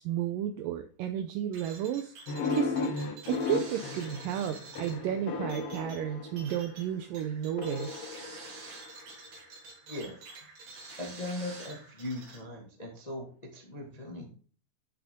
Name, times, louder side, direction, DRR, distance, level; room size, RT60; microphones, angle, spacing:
voice 1, 0.0-2.1 2.5-2.8 3.3-8.1, right 10 dB, 80° right, 7 dB, 2.0 m, -32 dB
sound 1, 1.5-12.4, right 3 dB, 60° right, 4.9 m, -48 dB
sound 2, 2.3-6.8 7.6-9.1, left 4 dB, 75° left, 1.3 m, -35 dB
voice 2, 11.0-14.3, left 1 dB, 20° left, 0 dB, 1.0 m, -39 dB
10.0 x 7.1 x 3.7 m, 0.43 s
omnidirectional pair, 4.6 m